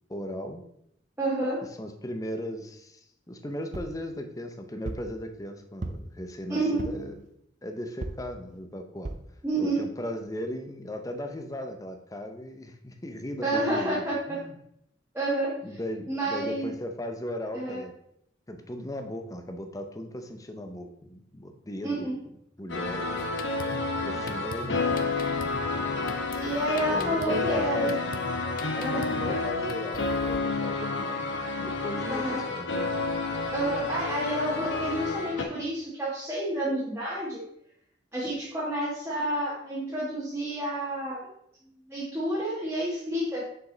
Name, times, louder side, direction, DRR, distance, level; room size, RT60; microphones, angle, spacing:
voice 1, 0.1-0.6 1.8-7.1 7.6-9.1 9.6-14.6 15.6-17.9 18.5-22.1 22.6-23.4 24.0-25.0 26.8-28.0 28.7-33.0, equal, 20° left, 6 dB, 0.7 m, -37 dB
voice 2, 1.2-1.6 6.5-6.8 9.4-9.8 13.4-14.2 15.1-15.8 16.1-16.7 17.5-17.8 21.8-22.2 26.4-27.9 28.8-29.4 32.1-32.4 33.5-37.4 38.1-41.2 41.9-43.5, right 1 dB, 10° right, -9 dB, 1.5 m, -29 dB
sound 1, 3.7-4.0 4.8-5.1 5.8-6.2 6.8-7.1 8.0-8.3 9.0-9.3 9.9-10.0 10.3-10.4, right 2 dB, 40° right, 0.5 m, -36 dB
sound 2, 22.7-35.4, left 3 dB, 90° left, 1.0 m, -30 dB
Drum kit, 23.2-30.4, left 3 dB, 50° left, 0.4 m, -42 dB
6.3 x 5.2 x 3.9 m, 0.73 s
head